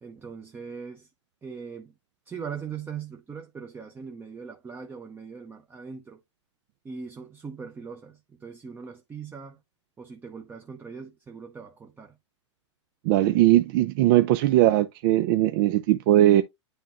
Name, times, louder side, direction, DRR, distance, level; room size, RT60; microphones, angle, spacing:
voice 1, 0.0-1.1 1.4-1.9 2.3-6.2 6.8-9.6 10.0-12.2, right 6 dB, 15° right, 0.8 m, -40 dB
voice 2, 13.0-16.4, right 14 dB, 45° right, 0.6 m, -20 dB
9.9 x 3.7 x 3.0 m
hypercardioid pair, 125°, 16 cm